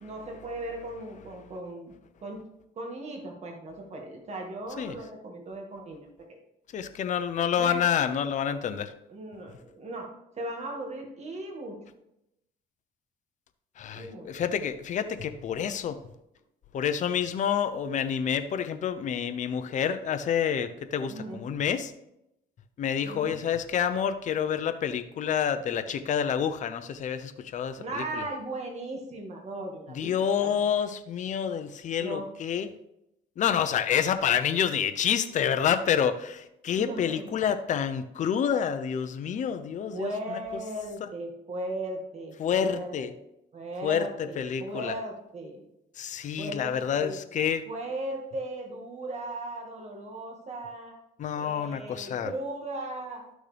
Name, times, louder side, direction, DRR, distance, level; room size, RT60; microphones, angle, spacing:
voice 1, 0.0-1.9 2.2-2.5 2.8-6.4 7.6-7.9 9.1-11.8 13.9-14.3 21.1-21.5 23.0-23.3 27.8-30.6 32.0-32.3 36.8-37.3 39.9-43.2 43.5-45.6 46.4-47.2 47.7-51.0 51.3-53.2, right 1 dB, 40° right, 2 dB, 1.9 m, -37 dB
voice 2, 6.7-8.9 13.8-16.0 16.7-21.9 22.8-28.2 29.9-32.7 33.4-40.1 41.0-41.1 42.4-43.1 43.8-44.9 46.0-47.6 51.2-52.3, left 8 dB, 45° left, 10 dB, 0.7 m, -28 dB
12.0 x 6.4 x 3.4 m, 0.84 s
cardioid pair, 110°, 17 cm